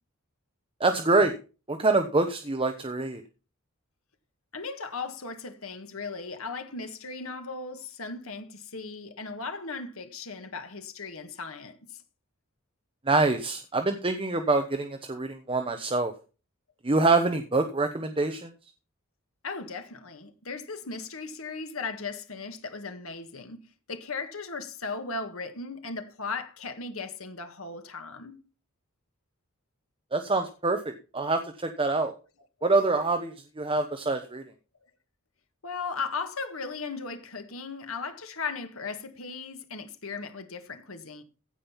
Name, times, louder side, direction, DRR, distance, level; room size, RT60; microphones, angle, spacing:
voice 1, 0.8-1.4 1.7-3.2 13.1-16.1 16.8-18.5 30.1-32.1 32.6-34.4, right 3 dB, 25° right, 1.0 m, -25 dB
voice 2, 4.5-11.8 19.4-23.6 23.9-28.4 35.6-41.2, left 4 dB, 80° left, 1.8 m, -37 dB
16.0 x 5.5 x 5.8 m
head